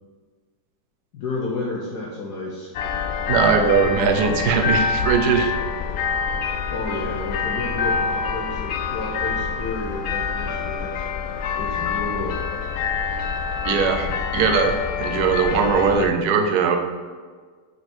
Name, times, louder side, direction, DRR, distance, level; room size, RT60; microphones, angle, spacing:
voice 1, 1.1-2.7 6.7-11.1 11.5-12.4 13.7-14.1, left 2 dB, 60° left, -4 dB, 1.3 m, -31 dB
sound 1, 2.7-16.1, left 6 dB, 80° left, 0.8 m, -26 dB
voice 2, 3.3-5.5 13.6-14.1 14.3-14.7 15.0-16.8, right 6 dB, 65° right, 4 dB, 1.1 m, -20 dB
6.6 x 4.3 x 4.4 m, 1.5 s
omnidirectional pair, 2.1 m